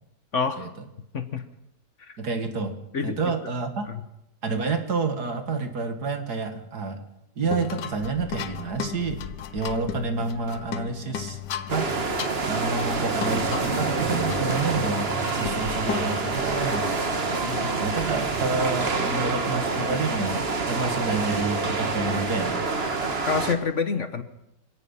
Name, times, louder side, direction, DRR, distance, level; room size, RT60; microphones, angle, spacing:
voice 1, 0.3-0.7 1.1-1.4 2.0-2.2 2.9-3.2 3.9-4.0 17.3-17.9 23.3-24.2, left 5 dB, 50° left, 9 dB, 1.4 m, -28 dB
voice 2, 2.2-2.7 3.0-3.9 4.4-7.0 7.4-9.2 9.5-11.4 11.7-11.9 12.4-17.0 17.8-22.7, right 4 dB, 65° right, 6 dB, 2.5 m, -29 dB
sound 1, 7.4-17.6, left 8 dB, 80° left, 1.6 m, -36 dB
sound 2, 11.7-23.5, right 3 dB, 35° right, 1.7 m, -27 dB
26.5 x 17.0 x 5.7 m, 0.86 s
omnidirectional pair, 1.8 m